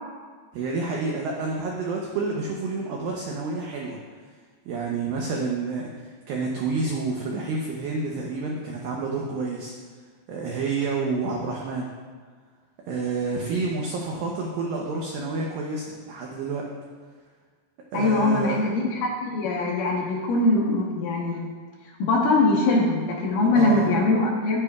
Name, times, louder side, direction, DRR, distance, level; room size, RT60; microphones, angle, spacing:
voice 1, 0.5-4.0 4.7-9.7 10.3-11.9 12.9-16.7 17.9-18.6 23.5-23.9, right 3 dB, 80° right, -1 dB, 2.1 m, -29 dB
voice 2, 17.9-21.5 22.0-24.6, left 2 dB, 70° left, -3 dB, 2.1 m, -22 dB
10.5 x 10.0 x 2.3 m, 1.5 s
omnidirectional pair, 5.1 m